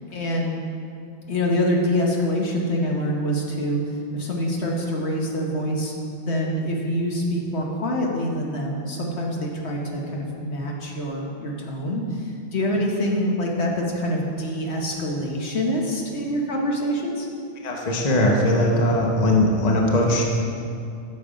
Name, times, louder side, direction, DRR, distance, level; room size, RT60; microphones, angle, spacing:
voice 1, 0.1-0.6 1.3-17.3, equal, 65° left, -1 dB, 1.3 m, -25 dB
voice 2, 17.6-20.3, left 1 dB, 35° left, -1 dB, 1.0 m, -20 dB
9.0 x 6.6 x 5.0 m, 2.5 s
omnidirectional pair, 1.2 m